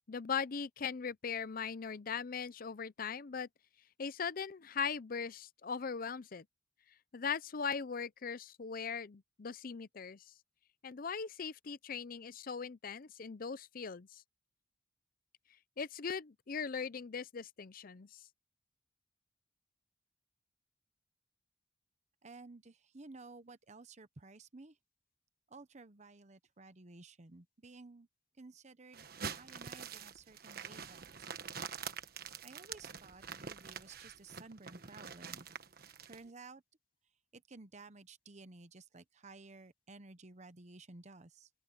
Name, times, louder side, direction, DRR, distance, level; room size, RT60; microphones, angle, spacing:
voice 1, 0.0-3.5 4.0-6.4 7.1-10.2 10.8-14.2 15.8-18.2, left 6 dB, 50° left, 0.6 m, -39 dB
voice 2, 22.2-24.8 25.5-28.1 28.4-29.0 29.4-31.3 32.4-35.5 36.0-36.6 37.3-41.5, right 3 dB, 40° right, 0.9 m, -54 dB
sound 1, 28.9-36.2, right 6 dB, 55° right, 1.3 m, -46 dB
open air
head